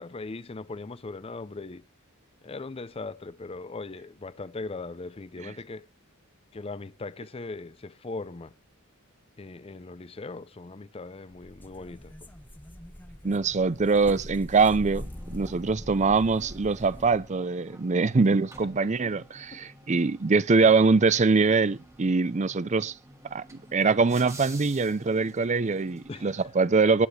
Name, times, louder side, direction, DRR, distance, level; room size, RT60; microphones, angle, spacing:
voice 1, 0.0-1.8 2.4-5.9 6.5-8.5 9.4-12.1 19.0-19.1 19.5-19.6 26.1-26.3, left 3 dB, 25° left, 0.5 m, -39 dB
sound 1, 11.4-17.3, equal, 10° left, 1.1 m, -42 dB
voice 2, 13.2-22.9 23.3-27.1, right 4 dB, 35° right, 0.5 m, -23 dB
sound 2, 14.9-26.5, right 2 dB, 15° right, 1.7 m, -51 dB
19.5 x 7.3 x 3.2 m
head